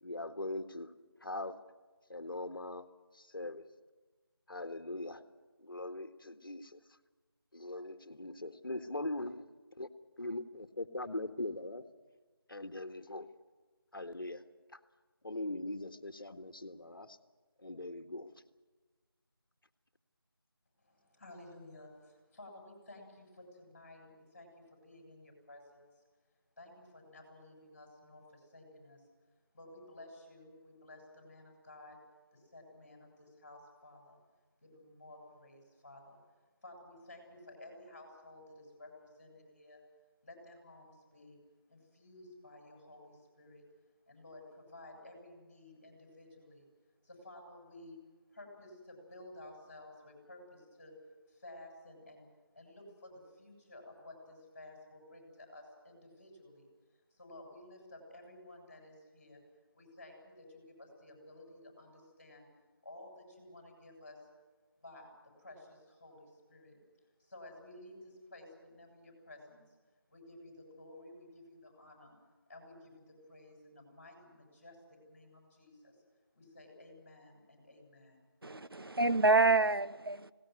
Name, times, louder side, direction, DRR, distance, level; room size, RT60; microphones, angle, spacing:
voice 1, 0.0-0.9 1.2-1.6 2.1-2.9 3.3-3.6 4.5-5.2 5.6-6.8 7.5-9.4 9.8-9.9 10.2-11.8 12.5-13.3 13.9-14.4 14.7-14.8 15.2-17.2 17.6-18.3, left 2 dB, 60° left, 1.7 m, -41 dB
voice 2, 20.8-26.0 26.6-29.1 29.5-32.0 32.3-34.2 34.6-36.2 36.6-39.8 40.2-41.4 41.7-43.6 44.1-46.7 47.0-48.0 48.3-50.9 51.3-52.3 52.5-56.7 57.1-59.4 59.7-62.5 62.8-64.3 64.8-66.8 67.2-69.8 70.1-72.1 72.5-76.0 76.3-78.2, left 1 dB, 30° left, 7.3 m, -54 dB
voice 3, 78.4-80.3, right 3 dB, 70° right, 0.9 m, -27 dB
19.5 x 18.5 x 9.6 m
figure-of-eight pair, 170°, 13 cm